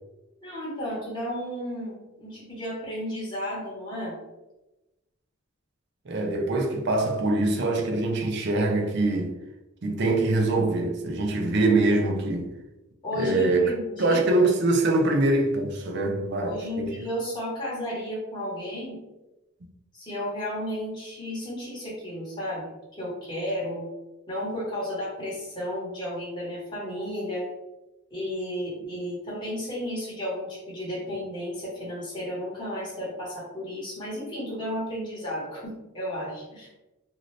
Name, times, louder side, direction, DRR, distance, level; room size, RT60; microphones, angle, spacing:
voice 1, 0.4-4.2 13.0-14.4 16.4-19.0 19.9-22.7 23.0-23.9 24.3-27.5 28.1-36.7, equal, 20° left, 1.2 m, -33 dB
voice 2, 6.1-9.3 9.8-12.5 13.2-13.6 14.0-16.9, right 2 dB, 50° right, 0.5 m, -24 dB
2.7 x 2.6 x 3.1 m
head